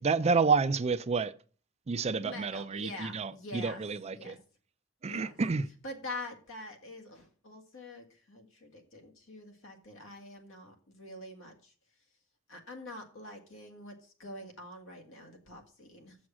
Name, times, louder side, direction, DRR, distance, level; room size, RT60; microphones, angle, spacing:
voice 1, 0.0-1.3 1.9-4.3 5.0-5.7, right 4 dB, 30° right, 0.4 m, -29 dB
voice 2, 2.2-3.8 4.1-4.4 5.1-5.4 5.8-11.7 12.5-16.2, left 2 dB, 65° left, 1.9 m, -45 dB
7.0 x 6.3 x 7.3 m
head